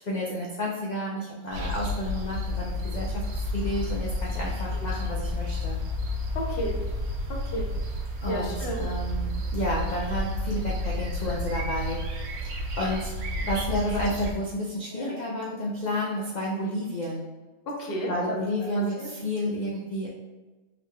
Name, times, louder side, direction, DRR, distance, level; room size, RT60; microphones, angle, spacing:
voice 1, 0.0-5.8 8.2-17.3 18.1-20.1, equal, 75° left, -5 dB, 0.4 m, -31 dB
sound 1, 1.5-14.3, left 1 dB, 70° right, 0.9 m, -31 dB
voice 2, 6.3-6.8 7.3-7.7 8.3-8.8 14.9-15.2 17.7-18.4 18.7-19.1, equal, 50° left, -2 dB, 0.8 m, -33 dB
4.0 x 3.1 x 2.2 m, 1.2 s
omnidirectional pair, 1.4 m